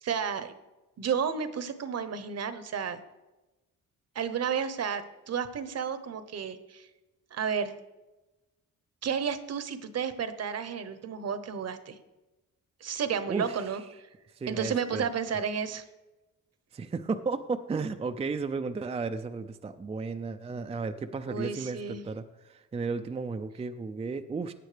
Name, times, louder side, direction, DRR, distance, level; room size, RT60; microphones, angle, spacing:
voice 1, 0.0-0.5 1.0-3.0 4.1-6.9 7.3-7.7 9.0-12.0 12.8-13.8 14.5-15.8 21.3-22.0, right 7 dB, 50° right, 11 dB, 0.9 m, -32 dB
voice 2, 14.4-15.1 16.7-24.5, right 4 dB, 20° right, 7 dB, 0.4 m, -34 dB
15.5 x 8.9 x 3.3 m, 1.1 s
cardioid pair, 110°, 32 cm